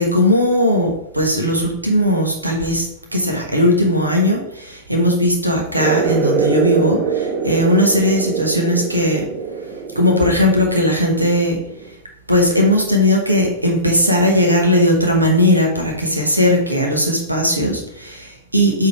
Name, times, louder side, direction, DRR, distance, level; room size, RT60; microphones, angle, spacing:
voice 1, 0.0-9.3 9.6-12.0 12.3-18.9, left 1 dB, 85° right, 2 dB, 1.2 m, -17 dB
sound 1, 5.7-11.9, right 6 dB, 35° right, 1.8 m, -24 dB
7.8 x 3.8 x 4.6 m, 0.78 s
figure-of-eight pair, 90°, 0 cm